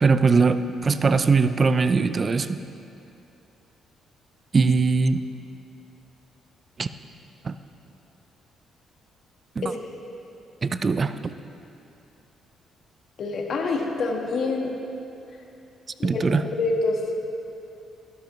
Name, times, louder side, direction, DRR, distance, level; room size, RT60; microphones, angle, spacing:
voice 1, 0.0-2.6 4.5-5.3 6.8-6.9 7.4-7.6 9.6-9.7 10.6-11.3 16.0-16.4, right 4 dB, 35° right, 12 dB, 0.4 m, -21 dB
voice 2, 13.2-14.8 16.0-17.2, left 3 dB, 60° left, 1 dB, 1.4 m, -26 dB
13.0 x 12.0 x 3.1 m, 2.8 s
cardioid pair, 90°, 0 cm